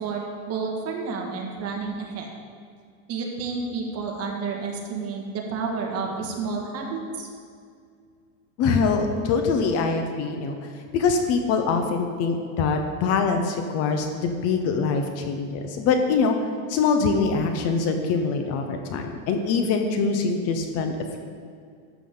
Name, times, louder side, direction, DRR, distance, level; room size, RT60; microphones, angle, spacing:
voice 1, 0.0-2.3 3.1-7.3, right 4 dB, 35° right, 1 dB, 1.8 m, -30 dB
voice 2, 8.6-10.6 10.9-16.4 16.7-21.2, left 4 dB, 35° left, 5 dB, 0.8 m, -24 dB
12.5 x 8.3 x 3.9 m, 2.2 s
supercardioid pair, 145°, 42 cm